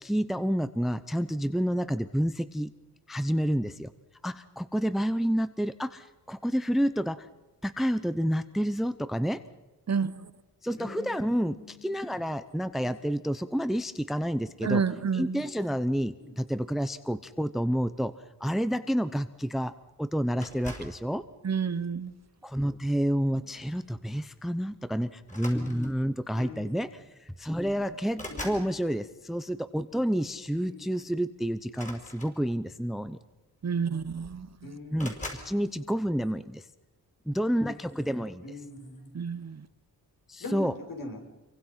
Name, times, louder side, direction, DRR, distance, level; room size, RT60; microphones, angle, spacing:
voice 1, 0.0-2.7 3.1-3.9 4.2-7.3 7.6-9.4 10.6-14.8 15.1-18.1 18.4-21.2 22.4-33.2 34.9-35.1 35.4-36.7 37.3-38.4 40.3-40.7, equal, ahead, 12 dB, 0.7 m, -29 dB
voice 2, 9.9-10.3 14.6-15.4 21.4-22.1 33.6-34.5 39.1-39.6, right 6 dB, 45° right, 14 dB, 1.0 m, -29 dB
voice 3, 10.8-12.2 12.8-13.0 16.2-16.3 23.2-23.4 26.4-26.7 28.3-28.6 30.6-31.2 34.6-35.2 35.6-36.1 38.4-39.2 40.4-41.2, left 2 dB, 55° left, 2 dB, 6.8 m, -44 dB
sound 1, 20.4-21.0 21.9-22.2 23.7-23.9 24.2-24.4 25.2-26.1 27.1-27.2 27.5-28.7 31.7-32.8 33.7-33.8 34.0-34.5 35.0-35.5, left 1 dB, 20° left, 5.9 m, -42 dB
28.0 x 24.0 x 5.8 m, 1.1 s
wide cardioid pair, 135°, 38 cm